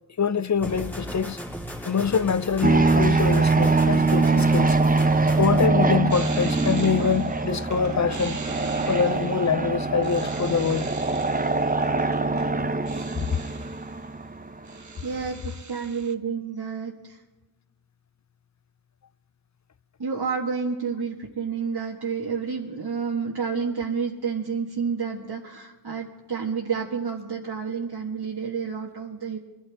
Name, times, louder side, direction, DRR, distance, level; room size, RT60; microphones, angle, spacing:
voice 1, 0.2-1.4 1.8-4.8 5.4-8.4 8.9-10.9 13.3-13.4, left 6 dB, 45° left, 0.5 m, -24 dB
sound 1, 0.6-5.7, equal, 5° left, 2.5 m, -36 dB
sound 2, 2.6-14.7, right 3 dB, 20° right, 0.7 m, -23 dB
sound 3, 6.1-14.1 14.4-16.1, right 4 dB, 45° right, 1.0 m, -42 dB
voice 2, 15.0-17.2 20.0-29.4, right 6 dB, 65° right, 1.6 m, -30 dB
23.0 x 12.5 x 3.5 m
wide cardioid pair, 55°, 42 cm